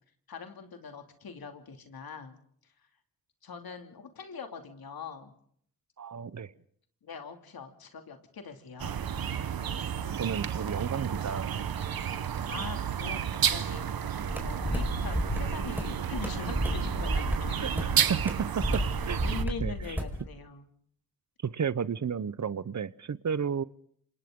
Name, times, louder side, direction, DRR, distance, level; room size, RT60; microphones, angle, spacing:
voice 1, 0.3-2.4 3.4-5.3 7.0-8.9 12.5-13.9 14.4-17.8 19.2-20.7, left 5 dB, 85° left, 5 dB, 2.7 m, -42 dB
voice 2, 6.0-6.5 10.1-11.7 17.6-19.2 19.6-19.7 21.4-23.6, right 7 dB, 50° right, 17 dB, 0.9 m, -33 dB
sound 1, 8.8-19.4, right 8 dB, 80° right, 1.1 m, -32 dB
sound 2, 14.3-20.2, equal, 5° right, 4.9 m, -32 dB
27.5 x 27.5 x 3.8 m, 0.63 s
cardioid pair, 65°, 35 cm